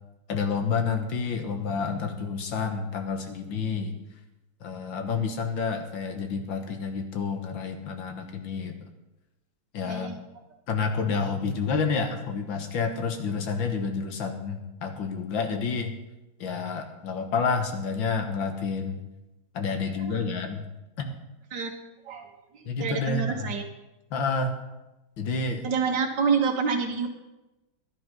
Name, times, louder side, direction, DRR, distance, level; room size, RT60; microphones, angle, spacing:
voice 1, 0.3-3.9 4.6-8.8 9.7-10.2 10.7-15.9 16.4-19.0 19.5-20.7 21.0-21.1 22.7-23.5 24.1-24.6 25.2-25.7, left 5 dB, 85° left, 6 dB, 2.0 m, -29 dB
voice 2, 9.8-10.2 19.8-20.1 21.5-21.7 22.1-22.3 22.5-23.6 25.6-27.1, right 5 dB, 65° right, 3 dB, 2.0 m, -27 dB
12.0 x 11.0 x 5.4 m, 1.0 s
omnidirectional pair, 2.0 m